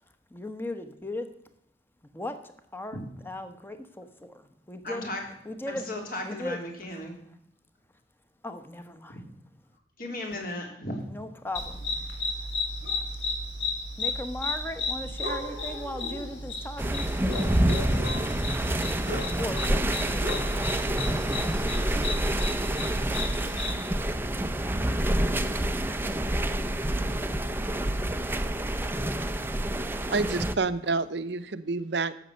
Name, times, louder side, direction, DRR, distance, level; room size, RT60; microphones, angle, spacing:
voice 1, 0.3-1.3 2.1-2.3 2.7-5.1 5.4-5.8 6.2-6.6 8.4-9.2 11.1-12.1 13.1-13.3 14.0-22.9 26.0-26.1, left 1 dB, 10° left, 9 dB, 1.1 m, -39 dB
voice 2, 4.8-5.2 5.7-7.2 9.1-9.2 10.0-11.1, left 1 dB, 50° left, 1 dB, 3.4 m, -35 dB
sound 1, 11.5-23.8, left 2 dB, 85° left, 3.9 m, -34 dB
sound 2, 16.8-30.5, right 1 dB, 10° right, 0.6 m, -28 dB
voice 3, 30.1-32.1, right 3 dB, 70° right, 12 dB, 0.8 m, -28 dB
12.5 x 8.2 x 6.5 m, 0.74 s
head